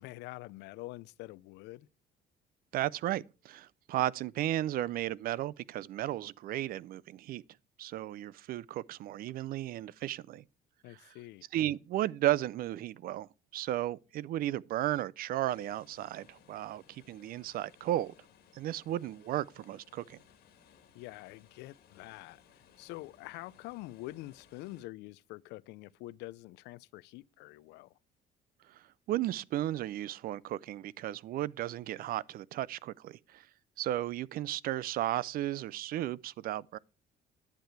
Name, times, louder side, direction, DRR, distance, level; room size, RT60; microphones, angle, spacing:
voice 1, 0.0-1.9 10.8-11.5 20.9-27.9, left 18 dB, 85° left, 0.4 m, -46 dB
voice 2, 2.7-7.4 7.8-10.4 11.5-13.3 13.5-18.1 18.5-20.2 28.7-33.4 33.8-36.8, right 13 dB, 60° right, 0.4 m, -34 dB
sound 1, 15.5-24.8, left 7 dB, 70° left, 1.7 m, -62 dB
10.5 x 6.8 x 4.6 m
cardioid pair, 110°, 17 cm